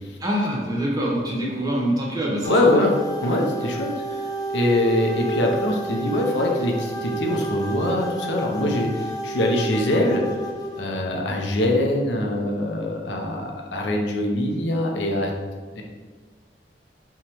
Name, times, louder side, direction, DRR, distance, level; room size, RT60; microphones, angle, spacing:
voice 1, 0.2-2.9, equal, 20° right, -4 dB, 0.9 m, -25 dB
voice 2, 2.4-2.9 3.2-3.9 4.5-10.2 10.8-15.3 15.8-15.9, left 1 dB, 85° left, 0 dB, 0.7 m, -23 dB
sound 1, 2.4-10.8, right 2 dB, 20° left, 0.6 m, -31 dB
3.5 x 3.0 x 4.4 m, 1.5 s
head